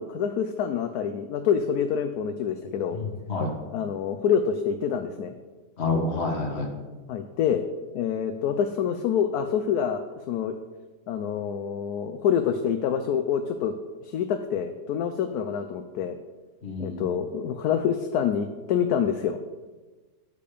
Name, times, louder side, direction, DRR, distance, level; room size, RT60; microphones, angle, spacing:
voice 1, 0.0-3.0 3.7-5.3 7.1-7.6 7.9-10.5 11.1-13.7 14.0-16.2 16.8-19.4, left 8 dB, 70° left, 8 dB, 1.1 m, -26 dB
voice 2, 2.9-3.5 5.8-6.7 16.6-17.0, left 3 dB, 40° left, 1 dB, 1.7 m, -28 dB
10.0 x 6.7 x 5.1 m, 1.3 s
omnidirectional pair, 1.8 m